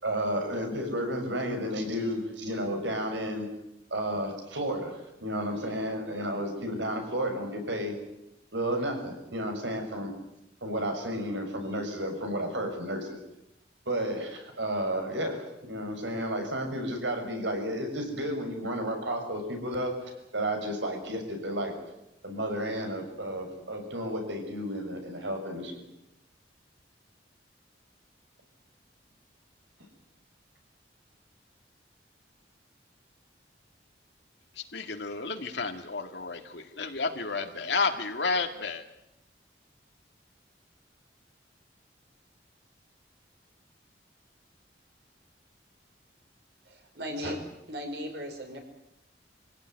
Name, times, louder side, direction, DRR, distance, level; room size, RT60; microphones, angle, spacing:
voice 1, 0.0-3.4 3.9-7.9 8.5-10.1 10.6-13.1 13.9-19.9 20.3-21.7 22.2-25.7, equal, 80° right, 4 dB, 6.5 m, -32 dB
voice 2, 34.5-38.8, left 4 dB, 70° left, 5 dB, 2.1 m, -31 dB
voice 3, 46.7-47.4 47.7-48.6, equal, 65° right, 4 dB, 5.5 m, -36 dB
26.0 x 17.0 x 9.8 m, 0.87 s
head